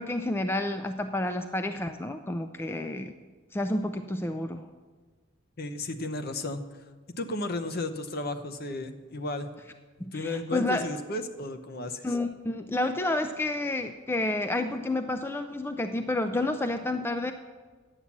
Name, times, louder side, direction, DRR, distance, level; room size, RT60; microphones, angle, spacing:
voice 1, 0.0-3.1 3.5-4.7 10.0-10.9 12.0-17.3, left 2 dB, 10° left, 8 dB, 0.3 m, -30 dB
voice 2, 5.6-6.6 7.2-9.5 10.0-12.0, left 2 dB, 50° left, 8 dB, 0.8 m, -33 dB
11.0 x 8.4 x 7.2 m, 1.4 s
head